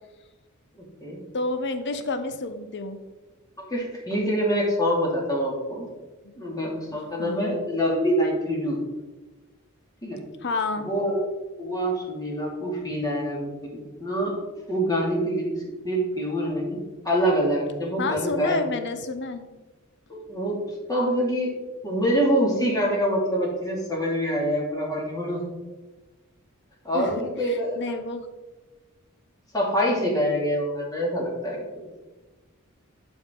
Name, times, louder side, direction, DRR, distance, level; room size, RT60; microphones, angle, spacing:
voice 1, 0.8-1.2 3.7-5.9 6.4-8.8 10.0-10.2 10.8-11.2 11.6-14.3 14.7-15.5 15.8-16.8 17.0-18.6 20.1-20.6 20.9-21.5 21.8-25.4 26.8-27.8 29.5-31.6, equal, 15° left, -3 dB, 2.5 m, -25 dB
voice 2, 1.3-3.0 6.2-6.4 6.9-7.5 10.4-10.9 18.0-19.5 26.9-27.1 27.5-28.3, left 3 dB, 55° left, 9 dB, 0.8 m, -30 dB
11.5 x 5.0 x 3.8 m, 1.2 s
head